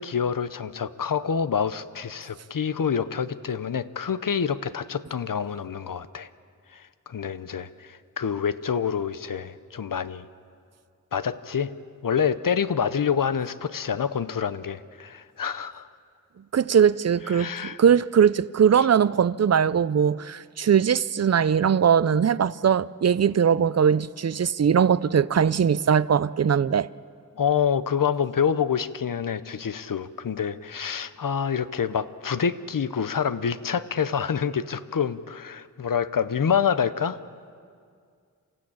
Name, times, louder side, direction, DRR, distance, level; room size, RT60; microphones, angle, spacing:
voice 1, 0.0-6.3 6.7-10.3 11.1-11.7 12.0-15.9 17.3-17.8 18.8-18.9 27.3-37.2, left 7 dB, 70° left, 0.8 m, -27 dB
voice 2, 16.5-17.5 17.8-26.9, right 7 dB, 50° right, 0.5 m, -20 dB
27.5 x 15.0 x 8.6 m
wide cardioid pair, 80°, 34 cm